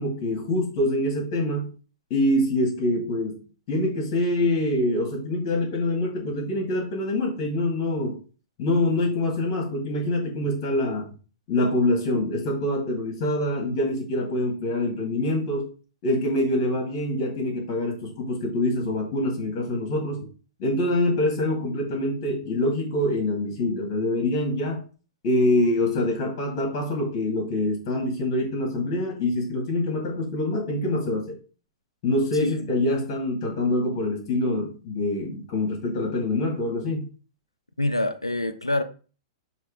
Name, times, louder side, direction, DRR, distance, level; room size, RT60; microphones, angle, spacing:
voice 1, 0.0-1.7 2.1-3.4 3.7-8.2 8.6-11.1 11.5-15.7 16.0-20.3 20.6-24.8 25.2-31.4 32.0-37.1, left 1 dB, 40° left, 1.8 m, -25 dB
voice 2, 32.3-32.7 37.8-38.8, left 1 dB, 90° left, 0.6 m, -26 dB
6.5 x 3.0 x 4.8 m
figure-of-eight pair, 105°, 3 cm